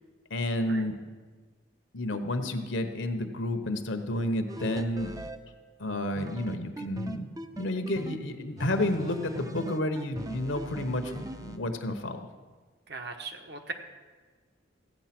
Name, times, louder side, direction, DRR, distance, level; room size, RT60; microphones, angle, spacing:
voice 1, 0.3-1.0 1.9-5.1 5.8-7.3 7.6-12.3, left 1 dB, 65° left, 7 dB, 1.0 m, -30 dB
sound 1, 4.5-5.4 6.2-8.2 8.6-11.6, right 1 dB, 15° right, 0.5 m, -40 dB
voice 2, 12.9-13.7, right 4 dB, 55° right, 5 dB, 1.1 m, -39 dB
15.0 x 9.0 x 6.0 m, 1.4 s
head